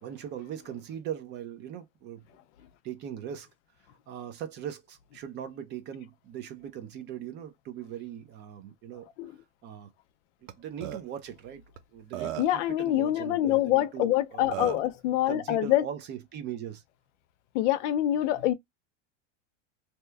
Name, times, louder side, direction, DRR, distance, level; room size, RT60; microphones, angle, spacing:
voice 1, 0.0-2.2 2.8-3.5 4.1-9.1 9.6-9.9 10.6-11.6 11.9-14.8 15.3-16.8, right 9 dB, 30° right, 0.4 m, -40 dB
Burping eructation, 10.5-10.6 10.8-11.0 11.8-11.9 12.1-12.6 14.0-14.1 14.5-14.9, right 13 dB, 85° right, 0.7 m, -35 dB
voice 2, 12.4-15.8 17.5-18.5, left 13 dB, 65° left, 0.6 m, -25 dB
2.8 x 2.2 x 3.3 m
supercardioid pair, 140°, 38 cm